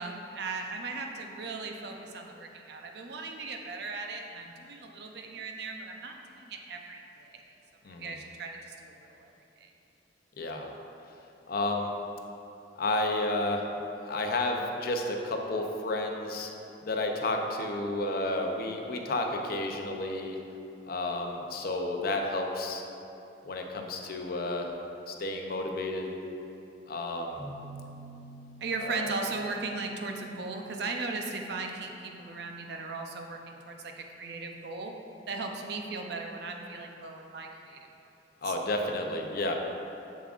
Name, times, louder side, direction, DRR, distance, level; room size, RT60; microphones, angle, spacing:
voice 1, 0.0-7.5 7.9-9.3 9.6-9.7 28.6-34.9 35.3-37.9 38.4-38.5, right 3 dB, 65° right, 2 dB, 0.6 m, -37 dB
voice 2, 7.8-8.2 10.4-10.7 11.5-11.9 12.8-13.7 14.0-16.5 16.8-20.4 20.9-22.8 23.4-24.7 25.1-26.1 26.9-27.4 28.8-29.1 38.4-39.6, left 2 dB, 55° left, 3 dB, 0.6 m, -31 dB
sound 1, 27.4-31.1, right 1 dB, 15° right, 1.4 m, -48 dB
7.4 x 7.0 x 2.5 m, 2.9 s
head